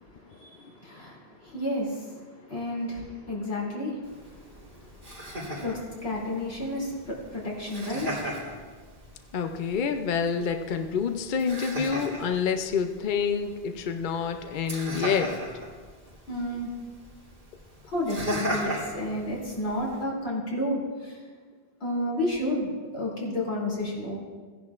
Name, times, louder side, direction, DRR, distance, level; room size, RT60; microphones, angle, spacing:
voice 1, 0.0-8.2 16.3-16.7 17.9-21.2 21.8-24.2, left 1 dB, 85° left, -4 dB, 3.2 m, -32 dB
Laughter, 4.0-20.0, equal, 75° right, 3.5 m, -38 dB
voice 2, 9.3-15.3, left 6 dB, 60° left, 6 dB, 0.7 m, -27 dB
16.5 x 10.5 x 2.5 m, 1.5 s
omnidirectional pair, 1.0 m